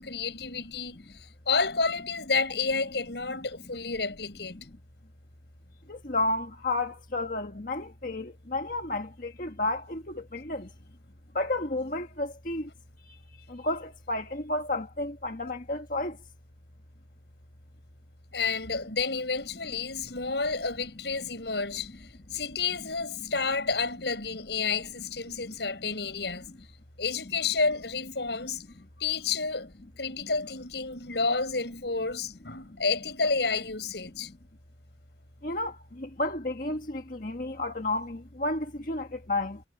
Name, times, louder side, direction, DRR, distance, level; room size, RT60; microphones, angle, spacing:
voice 1, 0.0-4.6 18.3-26.5 27.0-28.6 29.0-34.3, left 4 dB, 75° left, 6.3 m, -30 dB
voice 2, 5.9-10.7 11.3-12.7 13.1-13.2 13.5-16.2 30.2-30.3 35.4-39.6, left 2 dB, 50° left, 1.6 m, -32 dB
head